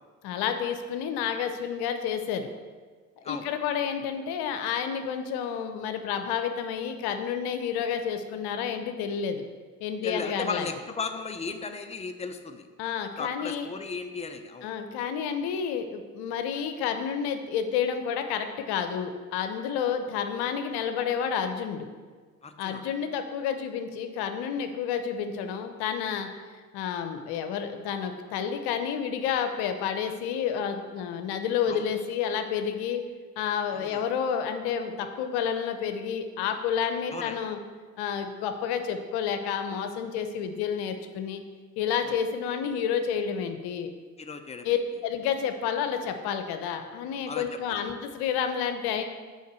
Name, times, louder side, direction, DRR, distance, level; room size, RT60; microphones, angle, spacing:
voice 1, 0.2-2.5 3.3-9.4 9.8-10.7 12.8-13.7 14.6-21.9 22.6-26.3 26.7-33.0 33.4-37.6 38.0-41.4 41.8-43.9 44.6-49.0, left 7 dB, 70° left, 7 dB, 0.8 m, -30 dB
voice 2, 10.0-12.7 13.2-14.7 22.4-22.8 31.6-31.8 33.7-34.0 37.1-37.4 42.0-42.1 44.2-44.8 47.3-47.8, left 4 dB, 15° left, 7 dB, 0.8 m, -36 dB
6.4 x 5.0 x 6.9 m, 1.5 s
hypercardioid pair, 55°, 40 cm